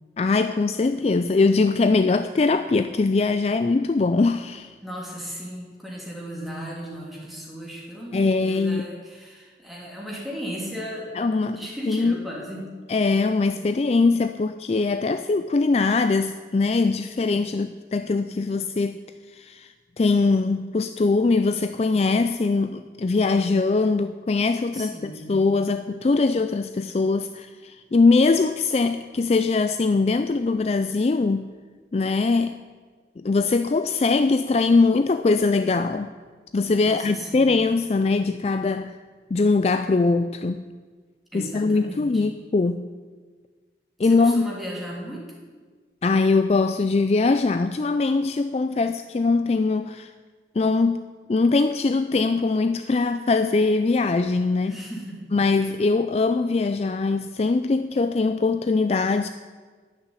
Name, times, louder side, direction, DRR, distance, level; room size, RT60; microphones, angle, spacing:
voice 1, 0.2-4.7 8.1-8.8 11.1-11.6 11.9-12.2 12.9-19.0 19.3-31.5 31.9-32.6 33.2-36.1 36.5-39.0 39.3-40.6 41.3-42.9 44.0-44.5 46.0-50.1 50.6-54.7 55.3-59.3, left 3 dB, 35° left, 10 dB, 0.3 m, -22 dB
voice 2, 4.8-11.1 11.4-12.7 24.7-25.4 36.8-37.5 41.3-42.2 44.0-45.3 54.7-55.3, equal, ahead, -4 dB, 3.0 m, -36 dB
12.5 x 7.1 x 9.7 m, 1.5 s
head